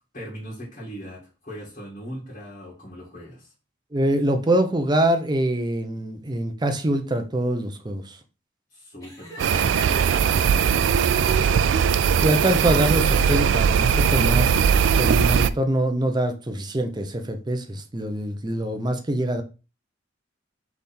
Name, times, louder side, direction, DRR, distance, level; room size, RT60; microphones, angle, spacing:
voice 1, 0.1-3.5 8.7-11.0, equal, 45° left, 1.8 m, -39 dB
voice 2, 3.9-8.2 12.2-19.4, right 1 dB, 25° right, 0.6 m, -24 dB
Laughter, 9.0-11.6 12.4-13.6 14.1-14.5, equal, 20° left, 1.4 m, -42 dB
sound 1, 9.4-15.5, right 7 dB, 75° right, 0.3 m, -20 dB
3.5 x 3.5 x 4.2 m
head